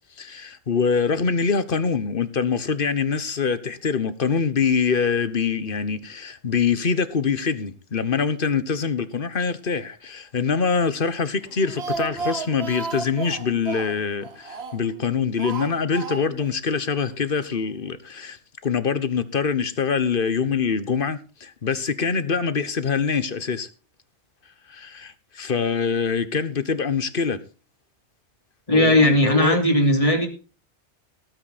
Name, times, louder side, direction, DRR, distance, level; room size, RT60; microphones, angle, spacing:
voice 1, 0.2-23.7 24.7-27.4 28.7-29.6, left 5 dB, 50° left, 1.3 m, -24 dB
Speech, 11.4-15.0 15.4-16.5 16.8-16.9 17.2-17.3, right 4 dB, 60° right, 1.4 m, -33 dB
voice 2, 28.7-30.3, left 1 dB, 30° left, 3.0 m, -17 dB
18.0 x 9.2 x 4.2 m
omnidirectional pair, 1.2 m